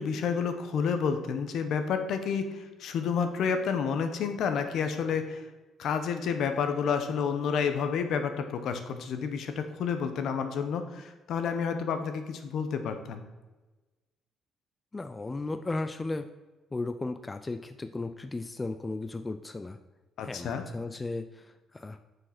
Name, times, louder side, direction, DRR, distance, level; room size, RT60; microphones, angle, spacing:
voice 1, 0.0-5.4 5.8-13.2 20.2-20.6, left 6 dB, 65° left, 8 dB, 1.0 m, -30 dB
voice 2, 14.9-16.3 16.7-19.8 20.2-22.0, left 2 dB, 15° left, 9 dB, 0.4 m, -35 dB
7.5 x 6.5 x 5.9 m, 1.2 s
cardioid pair, 150°, 0 cm